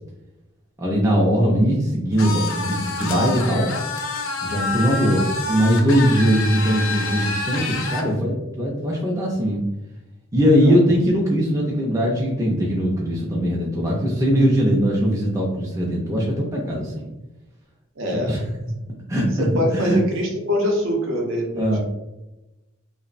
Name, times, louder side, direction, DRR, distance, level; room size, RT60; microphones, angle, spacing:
voice 1, 0.8-3.7 4.4-9.6 10.3-17.1 18.2-18.4 19.1-20.0 21.5-21.8, equal, 15° right, -3 dB, 0.3 m, -20 dB
sound 1, 2.2-8.1, left 3 dB, 65° left, 0.4 m, -27 dB
voice 2, 18.0-18.4 19.4-21.8, equal, 60° right, 0 dB, 0.6 m, -24 dB
2.9 x 2.0 x 2.4 m, 1.0 s
head